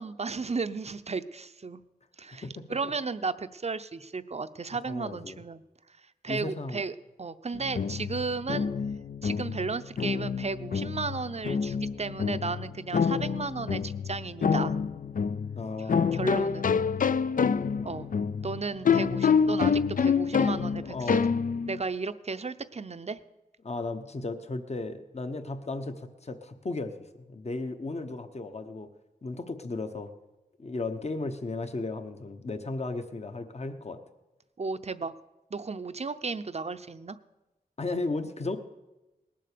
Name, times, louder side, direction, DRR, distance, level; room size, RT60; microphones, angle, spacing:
voice 1, 0.0-1.8 2.2-5.6 6.2-8.7 9.2-14.8 15.9-16.8 17.8-18.1 18.4-21.2 21.7-23.2 34.6-35.2 35.5-37.2, right 4 dB, 45° right, 12 dB, 0.6 m, -34 dB
voice 2, 4.9-5.4 6.3-6.8 15.6-16.3 17.8-18.0 18.9-19.1 20.9-21.3 23.6-26.9 27.3-28.9 29.2-30.1 30.6-34.0 37.8-38.6, left 3 dB, 45° left, 8 dB, 1.0 m, -35 dB
sound 1, 7.5-21.8, left 6 dB, 60° left, 0.4 m, -27 dB
19.0 x 7.6 x 6.8 m, 1.0 s
wide cardioid pair, 95°, 16 cm